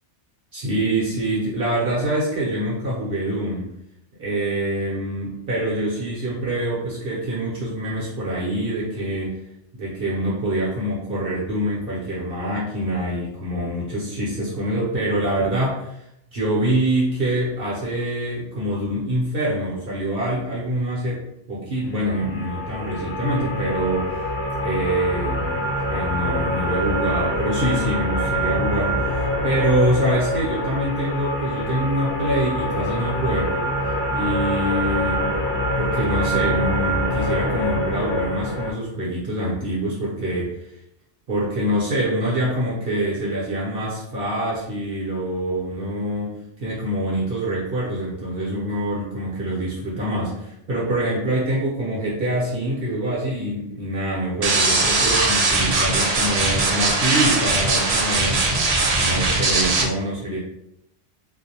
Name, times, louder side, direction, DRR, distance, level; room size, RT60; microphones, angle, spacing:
voice 1, 0.5-3.7 4.2-9.4 9.7-16.0 16.3-21.2 21.5-24.1 24.6-33.7 34.1-35.3 35.8-40.7 41.3-58.4 59.0-60.4, right 1 dB, 55° right, -5 dB, 0.8 m, -25 dB
sound 1, 21.9-38.7, equal, 70° left, 0.9 m, -25 dB
sound 2, 54.4-59.8, right 3 dB, 85° right, 0.3 m, -20 dB
2.5 x 2.0 x 2.7 m, 0.80 s
omnidirectional pair, 1.2 m